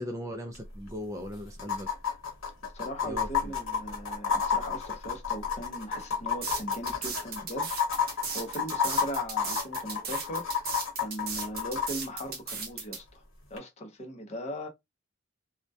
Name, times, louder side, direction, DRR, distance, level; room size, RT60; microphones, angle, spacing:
voice 1, 0.0-1.9 3.0-3.5, equal, 15° right, 0.4 m, -38 dB
sound 1, 0.5-0.6 0.9-1.0 1.6-11.9 13.6-13.7, left 6 dB, 75° left, 1.1 m, -30 dB
voice 2, 2.6-10.5 11.0-13.2 13.5-14.7, equal, 35° left, 0.6 m, -39 dB
sound 2, 6.4-13.0, right 5 dB, 45° right, 0.7 m, -36 dB
2.2 x 2.1 x 2.6 m
head